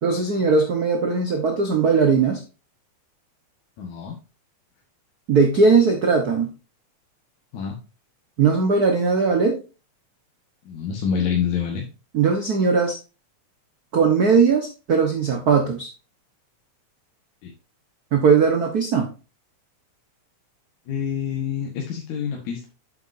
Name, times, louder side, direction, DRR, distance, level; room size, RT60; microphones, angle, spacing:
voice 1, 0.0-2.4 5.3-6.5 8.4-9.6 12.1-13.0 13.9-15.9 18.1-19.1, right 5 dB, 60° right, 4 dB, 1.0 m, -19 dB
voice 2, 3.8-4.2 7.5-7.8 10.7-11.9 17.4-17.5 20.9-22.7, left 7 dB, 80° left, -1 dB, 2.9 m, -27 dB
8.8 x 7.6 x 2.7 m, 0.31 s
omnidirectional pair, 3.3 m